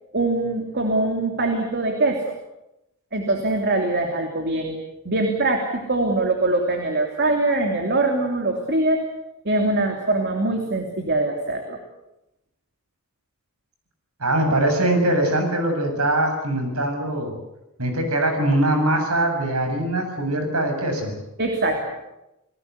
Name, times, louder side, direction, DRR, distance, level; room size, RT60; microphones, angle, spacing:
voice 1, 0.1-2.3 3.1-4.8 5.0-9.0 9.4-11.8 21.4-21.9, right 2 dB, 50° right, 4 dB, 3.0 m, -23 dB
voice 2, 14.2-17.3 17.8-21.1, right 1 dB, 80° right, 5 dB, 7.6 m, -22 dB
30.0 x 18.5 x 8.3 m, 0.91 s
head